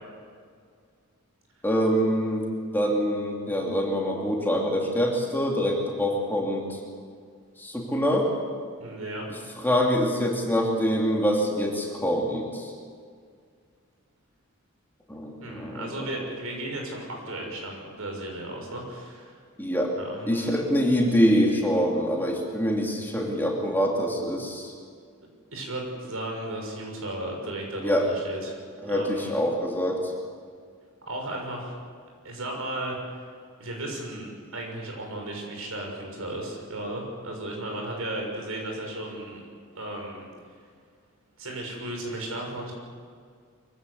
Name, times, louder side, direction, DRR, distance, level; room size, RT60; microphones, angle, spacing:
voice 1, 1.6-2.5 2.7-6.8 7.6-8.3 9.6-12.7 15.1-16.1 19.6-19.9 20.3-24.7 27.8-28.1 28.8-30.0, equal, 10° left, -1 dB, 2.9 m, -25 dB
voice 2, 8.8-9.3 15.4-19.4 20.0-20.6 25.5-29.3 31.1-31.7 32.2-33.2 33.6-39.4 39.7-40.2 41.4-42.7, right 1 dB, 75° right, 1 dB, 6.5 m, -35 dB
24.5 x 15.5 x 8.5 m, 2.1 s
head